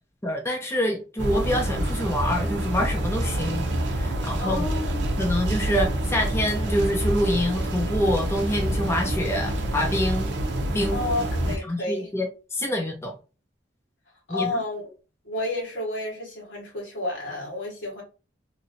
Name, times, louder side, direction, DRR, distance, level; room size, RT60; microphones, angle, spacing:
voice 1, 0.2-4.7 5.2-10.3 10.7-11.0 11.5-13.1 14.3-14.5, equal, 15° left, 0.5 m, -26 dB
sound 1, 1.2-11.6, right 1 dB, 70° right, 0.6 m, -27 dB
voice 2, 4.4-5.0 10.9-12.1 14.3-14.9 15.2-18.0, left 2 dB, 85° left, 1.5 m, -31 dB
3.0 x 2.6 x 2.6 m
head